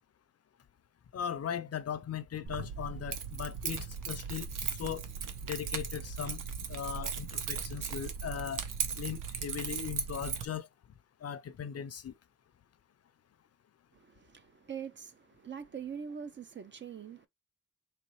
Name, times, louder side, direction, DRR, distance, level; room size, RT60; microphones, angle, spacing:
voice 1, 1.1-5.0 5.4-6.4 6.7-8.6 9.0-10.7 11.2-12.1, left 8 dB, 50° left, 0.5 m, -38 dB
Keys jangling, 2.5-10.4, right 6 dB, 85° right, 0.8 m, -37 dB
voice 2, 13.9-17.3, right 7 dB, 40° right, 0.4 m, -43 dB
4.2 x 3.0 x 3.0 m
wide cardioid pair, 150°, 31 cm